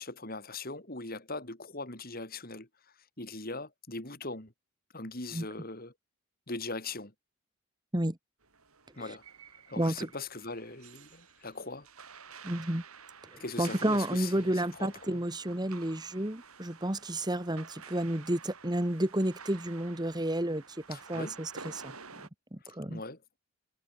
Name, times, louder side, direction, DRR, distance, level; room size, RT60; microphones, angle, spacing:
voice 1, 0.0-2.7 3.2-4.5 4.9-5.9 6.5-7.1 9.0-9.2 9.7-11.9 13.4-15.2 20.9-21.4 22.9-23.2, left 3 dB, 45° left, 3.9 m, -40 dB
sound 1, 8.4-22.3, right 5 dB, 85° right, 7.5 m, -51 dB
voice 2, 9.8-10.1 12.4-12.8 13.3-20.6 20.9-21.9 22.5-23.0, right 1 dB, 20° right, 1.6 m, -31 dB
head